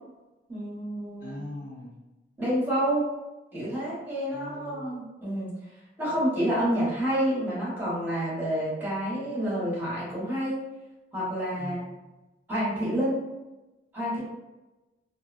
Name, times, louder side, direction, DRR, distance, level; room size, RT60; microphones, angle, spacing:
voice 1, 0.5-1.4 2.4-3.1 3.5-5.5 6.0-10.6 11.1-11.9 12.5-13.2 13.9-14.2, equal, 10° right, -8 dB, 0.9 m, -28 dB
voice 2, 1.2-2.0 4.3-4.9 11.5-11.9 14.1-14.2, left 1 dB, 50° left, -5 dB, 0.6 m, -41 dB
2.5 x 2.1 x 2.4 m, 1.1 s
head